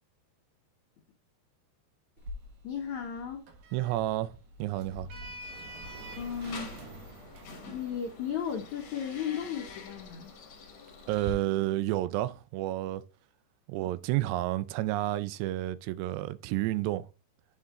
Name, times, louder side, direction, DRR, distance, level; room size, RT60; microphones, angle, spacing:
Sliding door, 2.2-11.3, right 1 dB, 60° right, 2.4 m, -47 dB
voice 1, 2.6-3.5 6.1-6.7 7.7-10.3, left 8 dB, 75° left, 1.7 m, -35 dB
voice 2, 3.7-5.1 11.1-13.0 13.7-17.1, right 15 dB, 90° right, 2.7 m, -30 dB
sound 1, 5.4-11.4, left 4 dB, 55° left, 2.2 m, -48 dB
8.4 x 5.0 x 3.7 m
omnidirectional pair, 4.8 m